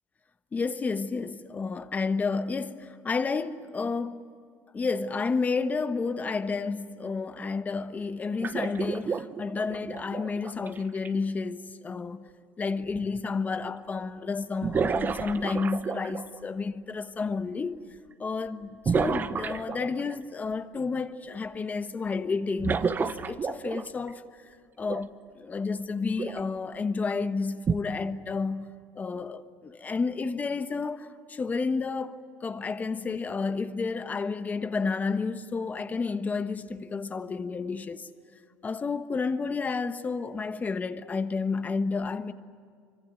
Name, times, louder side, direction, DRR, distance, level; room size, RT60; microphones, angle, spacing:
voice 1, 0.5-4.2 4.7-12.3 12.6-17.8 18.2-24.2 24.8-38.1 38.6-42.3, left 4 dB, 25° left, 1.2 m, -31 dB
sound 1, 8.4-11.1 13.0-13.1 14.6-16.4 18.8-20.1 22.6-24.1 24.8-25.0 26.2-26.4 27.7-27.8, right 5 dB, 30° right, 1.1 m, -30 dB
25.5 x 25.0 x 9.3 m
supercardioid pair, 110°, 7 cm